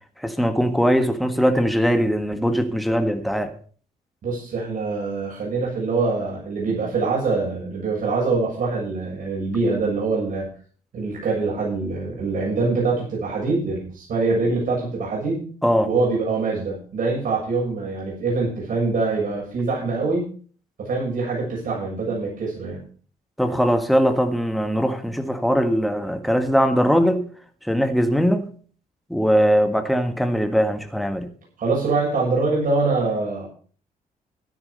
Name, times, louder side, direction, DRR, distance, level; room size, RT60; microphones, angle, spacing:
voice 1, 0.2-3.5 15.6-15.9 23.4-27.3 27.6-28.5 29.1-31.3, equal, ahead, 6 dB, 1.7 m, -20 dB
voice 2, 4.2-10.5 10.9-15.4 15.8-20.3 20.8-22.8 31.6-33.5, right 3 dB, 65° right, -3 dB, 7.1 m, -24 dB
13.0 x 10.0 x 5.2 m, 0.43 s
cardioid pair, 100°, 15 cm